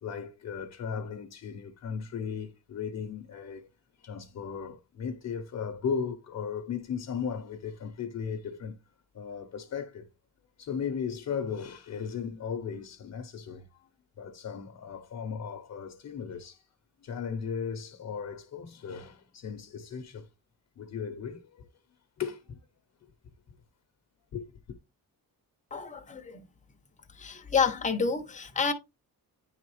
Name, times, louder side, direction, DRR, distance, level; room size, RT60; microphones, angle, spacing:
voice 1, 0.0-3.7 4.0-8.8 9.1-10.1 10.6-13.9 14.2-16.6 17.0-20.3 20.8-21.7 22.2-22.6 23.0-23.1 24.3-24.6, left 6 dB, 50° left, 0.9 m, -36 dB
voice 2, 25.7-26.4 27.2-28.7, left 5 dB, 20° left, 0.9 m, -29 dB
9.6 x 4.0 x 3.2 m
wide cardioid pair, 160°, 37 cm